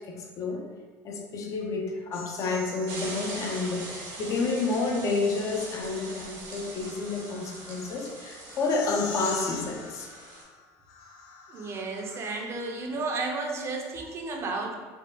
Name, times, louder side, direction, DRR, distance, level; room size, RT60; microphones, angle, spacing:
voice 1, 0.1-0.7 1.0-10.1, left 3 dB, 40° left, 1 dB, 0.5 m, -30 dB
sound 1, 2.1-4.1 5.5-12.7, left 4 dB, 90° left, 0.4 m, -43 dB
sound 2, 2.9-10.4, right 2 dB, 90° right, 1.3 m, -42 dB
voice 2, 11.5-14.7, right 3 dB, 35° right, 1 dB, 0.6 m, -32 dB
3.5 x 2.3 x 2.6 m, 1.4 s
supercardioid pair, 115°, 8 cm